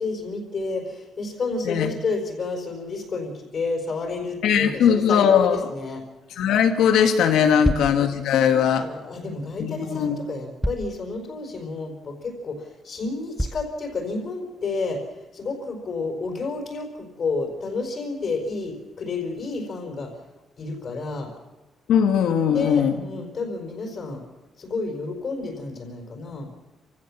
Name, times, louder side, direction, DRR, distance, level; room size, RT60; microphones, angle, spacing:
voice 1, 0.0-6.0 7.4-7.8 8.7-15.0 15.3-20.1 20.6-21.3 22.5-24.2 24.6-26.5, left 3 dB, 40° left, 2 dB, 4.6 m, -30 dB
voice 2, 4.4-5.6 6.4-8.8 9.9-10.2 21.9-23.0, left 8 dB, 90° left, 6 dB, 2.2 m, -19 dB
sound 1, 7.6-8.0 9.5-9.6 10.6-11.0 11.5-11.6 12.2-12.3 13.4-13.7, equal, ahead, 0.7 m, -26 dB
27.5 x 16.5 x 7.2 m, 1.1 s
cardioid pair, 155°, 0 cm